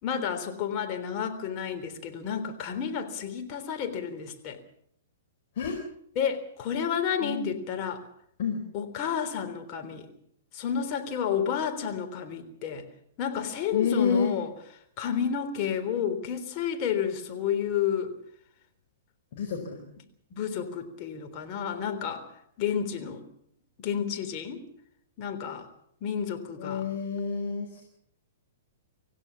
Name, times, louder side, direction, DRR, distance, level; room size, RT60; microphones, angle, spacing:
voice 1, 0.0-4.6 6.2-8.0 8.7-10.1 10.5-12.9 13.2-14.5 15.0-18.2 20.3-22.2 22.6-23.2 23.8-24.6 25.2-25.7 26.0-26.8, left 8 dB, 35° left, 5 dB, 3.6 m, -31 dB
voice 2, 7.2-7.6 8.4-8.6 13.7-14.4 19.3-19.8 23.0-23.1 26.6-27.8, left 6 dB, 50° left, 2 dB, 4.5 m, -29 dB
26.5 x 16.0 x 7.1 m, 0.71 s
figure-of-eight pair, 110°, 0 cm